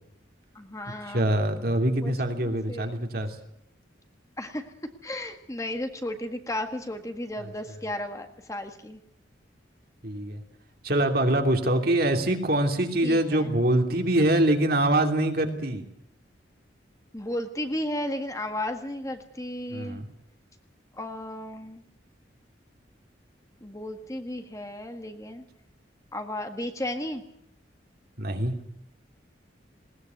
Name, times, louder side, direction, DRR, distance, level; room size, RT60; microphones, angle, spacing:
voice 1, 0.6-1.3 2.0-2.1 2.4-3.0 4.4-4.6 5.0-9.0 13.0-13.5 17.1-20.0 21.0-21.8 23.6-25.4 26.1-27.2, left 1 dB, 15° left, 6 dB, 1.7 m, -34 dB
voice 2, 1.1-3.3 7.4-7.5 10.0-10.4 10.8-15.8 19.7-20.0 28.2-28.5, right 1 dB, 55° right, 4 dB, 3.0 m, -24 dB
20.5 x 19.0 x 9.4 m, 0.74 s
head